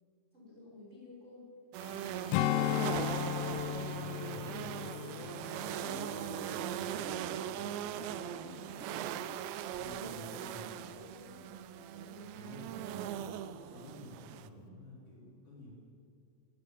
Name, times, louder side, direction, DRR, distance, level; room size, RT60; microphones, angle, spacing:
voice 1, 0.3-1.5 4.3-5.3 5.7-9.3 9.8-13.1, left 2 dB, 15° right, -5 dB, 5.9 m, -52 dB
sound 1, 1.7-14.5, right 10 dB, 85° right, 2.6 m, -40 dB
sound 2, 1.8-10.1, left 5 dB, 60° left, 2.1 m, -55 dB
Strum, 2.3-7.0 7.4-7.6, left 13 dB, 80° left, 3.1 m, -36 dB
voice 2, 3.9-5.4 9.8-11.0 12.2-12.7 13.7-15.7, equal, 40° left, -5 dB, 5.1 m, -51 dB
19.0 x 16.5 x 8.9 m, 2.6 s
omnidirectional pair, 5.9 m